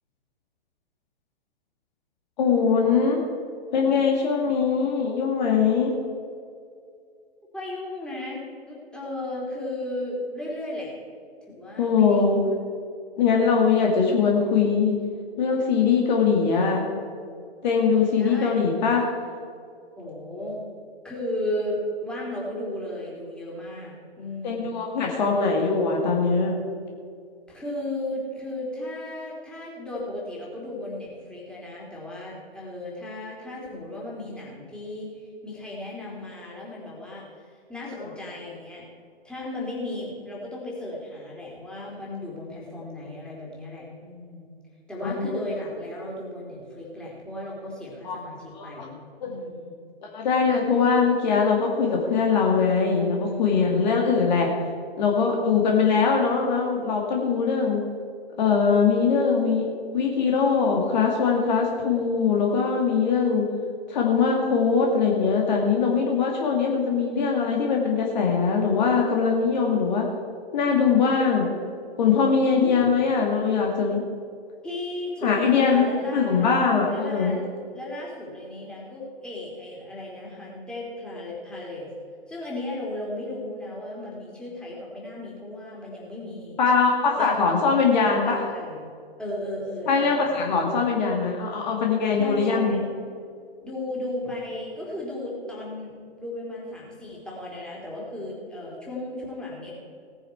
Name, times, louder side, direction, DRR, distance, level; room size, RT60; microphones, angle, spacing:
voice 1, 2.4-3.2 3.7-5.9 11.8-12.4 13.2-15.0 15.4-17.0 17.6-19.1 24.4-26.5 45.0-45.3 48.0-48.2 48.6-48.7 49.2-49.3 50.1-54.5 55.0-57.8 58.4-59.7 59.9-63.5 63.9-70.1 70.5-71.5 72.0-74.0 75.2-77.4 86.6-88.4 89.9-92.8, left 5 dB, 45° left, 0 dB, 2.3 m, -22 dB
voice 2, 7.5-10.9 11.5-12.5 13.2-13.6 18.1-18.6 20.0-20.6 21.0-24.7 27.5-38.9 39.2-44.5 44.9-49.7 53.2-54.4 72.5-73.0 74.6-76.6 76.8-77.4 77.7-81.9 82.3-86.6 87.1-87.4 88.0-88.8 89.2-90.5 92.2-92.9 93.6-99.7, left 1 dB, 5° left, -5 dB, 3.6 m, -35 dB
18.0 x 10.0 x 4.6 m, 2.3 s
figure-of-eight pair, 115°, 31 cm